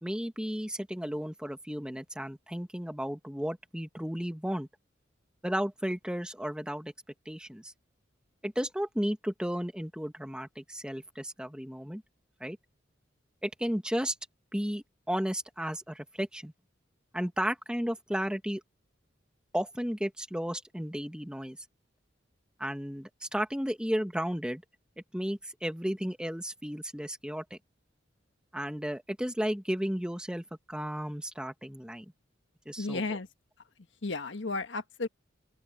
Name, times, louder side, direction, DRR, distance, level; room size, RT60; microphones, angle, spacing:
voice 1, 0.0-4.7 5.4-6.9 7.2-7.7 8.4-12.0 12.4-12.6 13.4-14.1 14.5-16.5 17.1-18.6 19.5-21.6 22.6-24.6 25.1-27.6 28.5-32.0 32.6-33.0, equal, 5° right, 1.7 m, -33 dB
voice 2, 32.8-33.3 34.0-35.1, left 3 dB, 75° left, 1.4 m, -33 dB
open air
head